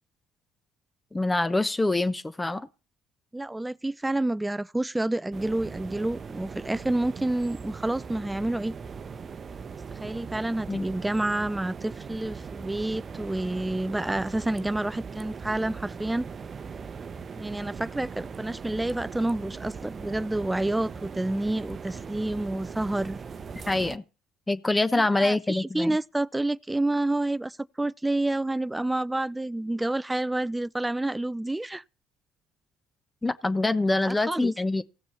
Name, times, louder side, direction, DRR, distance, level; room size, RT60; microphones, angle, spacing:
voice 1, 1.1-2.7 10.7-10.9 23.7-24.0 24.5-26.0 33.2-34.8, left 2 dB, 15° left, 1.1 m, -25 dB
voice 2, 3.3-8.7 9.9-16.3 17.4-23.2 24.9-31.8 34.0-34.5, right 1 dB, 10° right, 0.6 m, -29 dB
sound 1, 5.3-24.0, right 5 dB, 45° right, 0.9 m, -40 dB
16.5 x 6.9 x 7.0 m
supercardioid pair, 70°, 0 cm